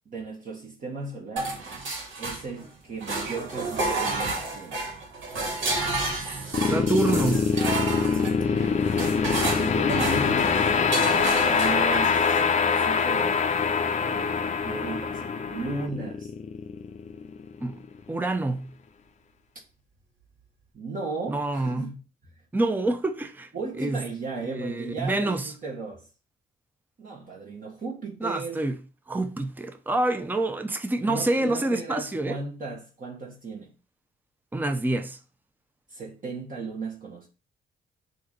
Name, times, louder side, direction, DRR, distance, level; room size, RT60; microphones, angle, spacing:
voice 1, 0.0-1.6 2.2-4.8 9.6-10.6 11.1-13.4 13.9-14.4 14.6-16.3 20.7-22.0 23.5-26.0 27.0-28.6 31.0-33.7 35.9-37.3, right 3 dB, 45° right, 1.5 m, -35 dB
sound 1, 1.4-2.7 3.0-12.4, right 2 dB, 70° right, 2.2 m, -31 dB
sound 2, 6.5-17.7, left 5 dB, 35° left, 0.6 m, -24 dB
voice 2, 6.7-7.5 17.6-17.8 18.1-18.7 21.3-21.9 22.5-23.5 23.8-24.0 24.5-25.5 28.2-28.8 29.1-32.4 34.5-35.2, right 2 dB, 10° right, 0.7 m, -27 dB
6.4 x 2.8 x 5.1 m
cardioid pair, 90°, 20 cm